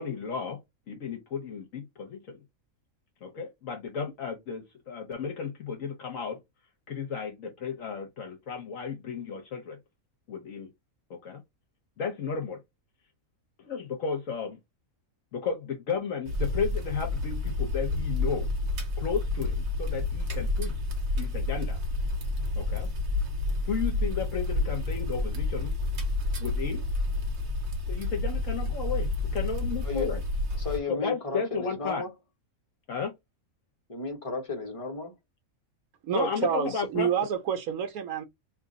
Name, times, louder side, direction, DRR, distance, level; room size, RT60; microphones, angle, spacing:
voice 1, 0.0-2.4 3.2-6.4 6.9-9.8 10.3-10.7 11.1-11.4 12.0-12.6 13.6-14.6 15.3-18.5 19.0-20.8 21.2-21.8 22.6-22.9 23.6-25.7 26.4-26.8 27.9-30.2 30.9-32.0 32.9-33.1 36.1-37.1, left 6 dB, 65° left, 1.1 m, -33 dB
sound 1, 16.2-30.8, left 2 dB, 55° right, 1.2 m, -29 dB
voice 2, 30.6-32.1 33.9-35.1, left 3 dB, 25° left, 1.1 m, -34 dB
voice 3, 36.0-38.2, right 8 dB, 80° right, 1.2 m, -28 dB
2.8 x 2.5 x 3.8 m
omnidirectional pair, 1.5 m